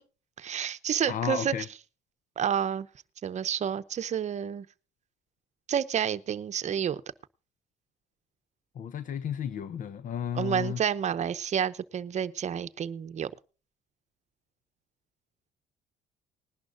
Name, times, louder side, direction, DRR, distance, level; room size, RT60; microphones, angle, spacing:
voice 1, 0.4-1.5 2.4-2.9 3.2-4.7 5.7-7.0 10.3-13.3, right 8 dB, 45° right, 0.8 m, -29 dB
voice 2, 1.1-1.6 8.8-10.8, left 8 dB, 50° left, 0.7 m, -33 dB
20.0 x 11.5 x 2.6 m
cardioid pair, 110°, 17 cm